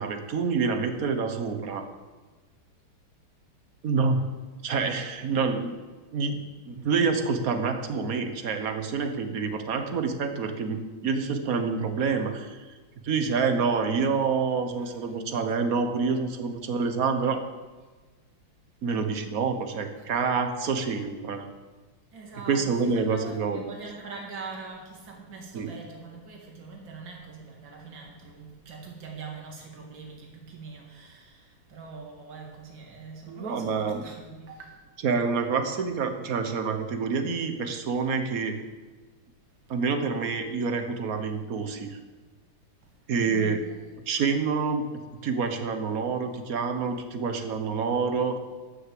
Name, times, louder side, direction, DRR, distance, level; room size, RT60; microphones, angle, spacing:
voice 1, 0.0-1.9 3.8-4.2 4.6-5.8 6.1-12.6 13.0-17.4 18.8-21.5 22.5-23.7 25.5-25.7 33.3-34.0 35.0-38.6 39.7-42.0 43.1-43.6 44.1-44.9 45.2-48.4, right 5 dB, 50° right, 1.3 m, -27 dB
voice 2, 22.1-34.8 43.2-43.6, right 4 dB, 65° right, 2.7 m, -43 dB
13.0 x 6.6 x 7.6 m
omnidirectional pair, 2.2 m